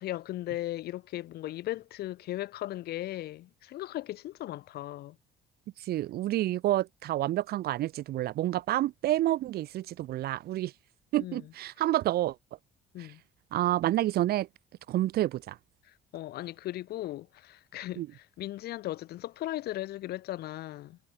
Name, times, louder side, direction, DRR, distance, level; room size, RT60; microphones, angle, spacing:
voice 1, 0.0-5.2 11.2-11.5 12.9-13.2 15.9-21.0, left 15 dB, 70° left, 1.2 m, -37 dB
voice 2, 5.8-10.7 11.1-12.4 13.5-14.5 14.9-15.6 18.0-18.1, right 14 dB, 65° right, 1.0 m, -29 dB
cardioid pair, 110°, 17 cm